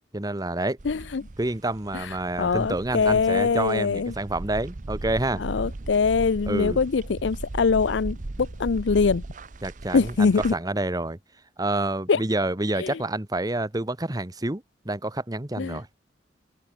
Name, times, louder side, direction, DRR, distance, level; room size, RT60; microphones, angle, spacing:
voice 1, 0.1-0.8 1.4-5.4 6.5-6.8 9.6-11.2 11.6-15.9, right 2 dB, 20° right, 1.1 m, -28 dB
voice 2, 0.8-1.3 1.9-2.1 2.4-4.1 5.4-9.2 9.9-10.5 12.1-12.2 12.8-13.0 15.6-15.8, left 5 dB, 80° left, 0.5 m, -23 dB
sound 1, 0.8-10.5, right 2 dB, 45° right, 0.7 m, -37 dB
open air
head